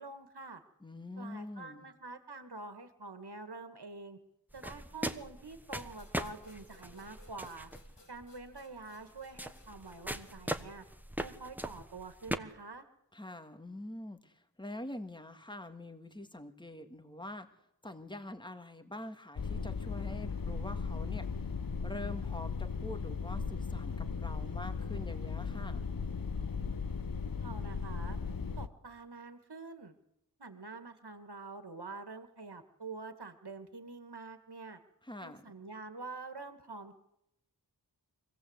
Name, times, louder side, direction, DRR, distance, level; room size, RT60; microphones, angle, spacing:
voice 1, 0.0-0.6 1.2-4.2 4.5-7.7 8.1-10.9 11.2-12.8 27.4-28.2 28.6-30.0 30.4-34.8 35.2-36.9, right 3 dB, 65° right, 8 dB, 2.0 m, -46 dB
voice 2, 0.8-1.9 13.1-17.5 17.8-21.3 21.8-25.9 35.0-35.5, left 1 dB, 10° left, 7 dB, 1.9 m, -45 dB
sound 1, 4.5-12.4, right 1 dB, 5° right, 1.3 m, -41 dB
sound 2, 5.7-11.1, left 2 dB, 75° left, 3.3 m, -63 dB
sound 3, 19.4-28.7, left 5 dB, 55° left, 0.9 m, -37 dB
24.0 x 17.5 x 8.1 m, 0.82 s
wide cardioid pair, 50°, 42 cm